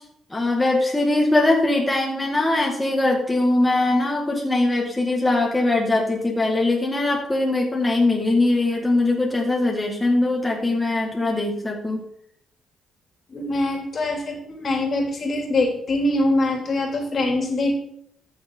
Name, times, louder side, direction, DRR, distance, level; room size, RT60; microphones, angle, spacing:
voice 1, 0.3-12.0, left 2 dB, 10° left, -1 dB, 2.0 m, -21 dB
voice 2, 13.3-17.8, left 2 dB, 45° left, 2 dB, 2.8 m, -23 dB
14.0 x 6.4 x 3.8 m, 0.69 s
cardioid pair, 90°, 0 cm